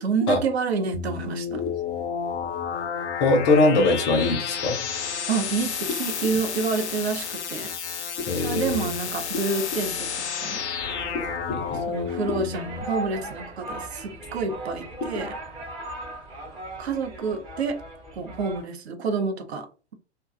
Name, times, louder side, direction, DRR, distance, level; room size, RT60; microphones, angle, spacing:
voice 1, 0.0-1.6 3.8-3.9 5.3-7.8 8.3-10.1 10.4-10.6 11.7-15.4 16.8-17.8 18.2-19.9, right 5 dB, 65° right, 0.6 m, -28 dB
sound 1, 0.9-12.8, left 7 dB, 70° left, 0.6 m, -31 dB
voice 2, 3.2-4.8 8.3-8.9 11.5-11.8, left 2 dB, 25° left, 0.4 m, -21 dB
sound 2, 10.8-18.6, right 1 dB, 15° right, 0.6 m, -38 dB
2.4 x 2.2 x 2.4 m
figure-of-eight pair, 105°, 35 cm